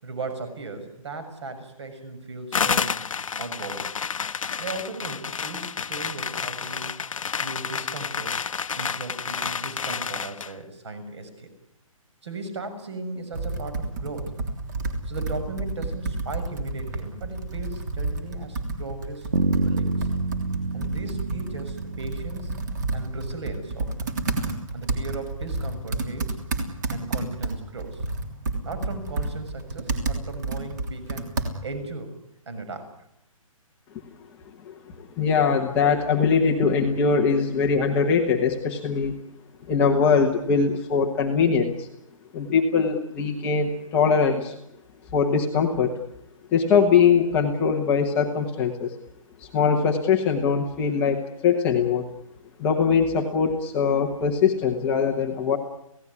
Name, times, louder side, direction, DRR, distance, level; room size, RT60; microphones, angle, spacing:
voice 1, 0.0-3.0 3.4-3.9 4.6-6.9 7.4-8.3 8.8-11.5 12.2-14.3 15.0-19.3 19.5-20.1 20.7-22.5 22.9-23.9 24.7-26.4 26.9-28.0 28.6-31.4 31.6-32.1 32.4-32.9, right 3 dB, 50° right, 10 dB, 6.7 m, -37 dB
sound 1, 2.5-10.5, left 6 dB, 65° left, 1.1 m, -30 dB
Computer keyboard, 13.3-31.8, right 3 dB, 30° right, 3.3 m, -31 dB
Bass guitar, 19.3-23.4, right 4 dB, 75° right, 1.5 m, -28 dB
voice 2, 34.7-39.2 39.7-41.9 42.3-44.6 45.1-46.0 46.5-49.0 49.4-52.0 52.6-55.6, left 6 dB, 10° left, 0 dB, 1.1 m, -22 dB
27.5 x 17.5 x 9.8 m, 0.84 s
hypercardioid pair, 180°, 18 cm